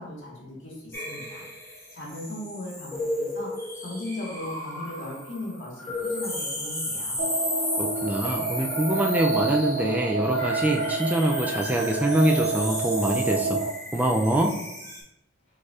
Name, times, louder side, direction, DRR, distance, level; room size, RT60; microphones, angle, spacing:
voice 1, 0.0-1.5 1.9-7.2, left 1 dB, 75° left, -4 dB, 1.7 m, -38 dB
sound 1, 0.9-15.0, left 1 dB, 15° left, 1.4 m, -34 dB
sound 2, 7.2-13.7, right 4 dB, 65° right, 0.5 m, -29 dB
voice 2, 7.8-13.6 13.9-14.6, right 1 dB, 10° right, 1 dB, 0.3 m, -24 dB
4.8 x 4.3 x 2.4 m, 0.89 s
head